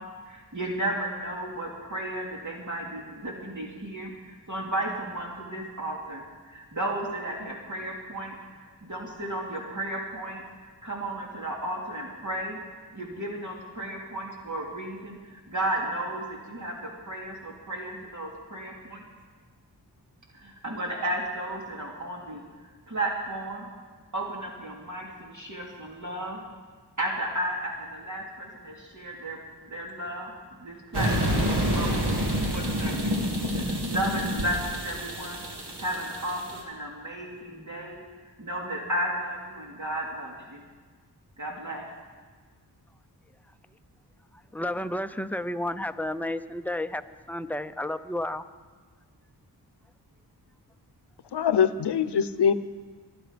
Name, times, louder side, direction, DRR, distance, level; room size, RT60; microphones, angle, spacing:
voice 1, 0.0-12.6 12.9-19.0 20.3-22.4 22.9-23.7 24.1-26.4 27.0-30.3 30.6-33.2 33.5-35.5 35.8-38.0 38.4-40.6 41.4-41.9, right 1 dB, 45° right, -2 dB, 2.5 m, -34 dB
sound 1, 30.9-36.6, equal, 75° right, 2.5 m, -28 dB
voice 2, 44.5-47.0 47.3-48.4, left 1 dB, 5° left, 10 dB, 0.6 m, -31 dB
voice 3, 51.3-52.5, left 7 dB, 80° left, 14 dB, 0.7 m, -23 dB
24.5 x 9.2 x 5.2 m, 1.4 s
wide cardioid pair, 65°, 41 cm